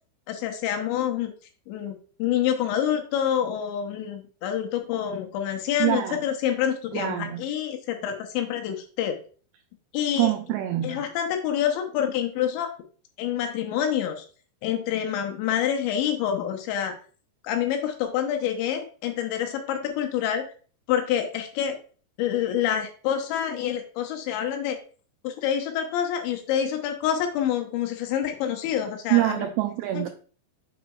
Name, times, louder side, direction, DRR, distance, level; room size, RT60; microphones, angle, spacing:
voice 1, 0.3-1.3 1.7-9.2 9.9-10.3 10.8-12.7 13.2-14.3 14.6-16.9 17.4-20.4 20.9-21.8 22.2-24.8 25.2-29.4 29.9-30.1, left 9 dB, 80° left, 4 dB, 3.0 m, -27 dB
voice 2, 5.8-6.2 6.9-7.5 10.2-11.1 29.1-30.1, right 15 dB, 90° right, 6 dB, 2.3 m, -25 dB
7.3 x 5.9 x 2.3 m, 0.40 s
omnidirectional pair, 5.4 m